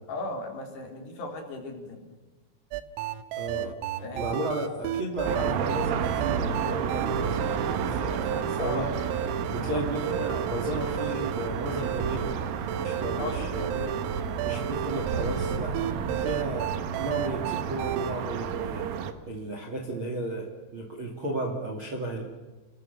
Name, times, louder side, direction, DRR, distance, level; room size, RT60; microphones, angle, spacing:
voice 1, 0.1-2.0 4.0-4.4 8.6-8.9 9.5-9.8 13.2-13.8 16.0-16.3, left 2 dB, 55° left, 2 dB, 5.1 m, -36 dB
sound 1, 2.7-18.1, right 9 dB, 90° right, 3.7 m, -33 dB
voice 2, 3.3-3.8 4.1-8.9 9.5-12.4 12.8-13.9 14.4-15.9 16.2-16.7 17.0-18.9 19.2-22.2, right 1 dB, 35° right, 1 dB, 2.1 m, -34 dB
sound 2, 5.3-19.1, right 7 dB, 70° right, 2.3 m, -31 dB
29.0 x 21.0 x 6.8 m, 1.2 s
omnidirectional pair, 5.9 m